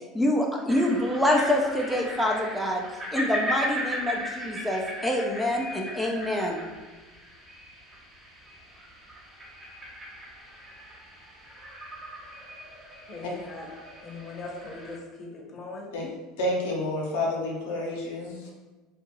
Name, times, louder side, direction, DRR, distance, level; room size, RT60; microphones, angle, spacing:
voice 1, 0.0-2.8 3.1-6.7, left 1 dB, ahead, 0.4 m, -26 dB
sound 1, 0.7-15.0, equal, 20° right, 0.8 m, -37 dB
voice 2, 13.1-13.7 14.0-15.9, left 3 dB, 35° left, 0.8 m, -40 dB
voice 3, 16.4-18.5, left 1 dB, 80° left, 0.6 m, -29 dB
2.8 x 2.3 x 3.0 m
hypercardioid pair, 90°, 0 cm